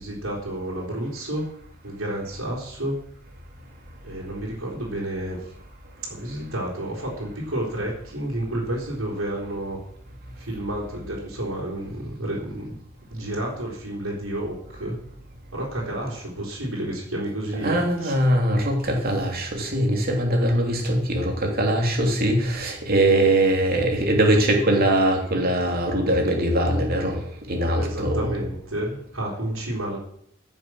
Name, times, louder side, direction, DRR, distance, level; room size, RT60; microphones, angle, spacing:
voice 1, 0.0-1.5 1.8-3.0 4.0-5.5 6.0-9.8 10.4-12.8 13.1-15.0 15.5-18.1 27.8-30.0, right 1 dB, 90° right, -4 dB, 4.0 m, -30 dB
voice 2, 17.6-27.2 27.5-28.3, right 1 dB, 50° right, 1 dB, 3.0 m, -21 dB
15.0 x 7.3 x 6.3 m, 0.70 s
head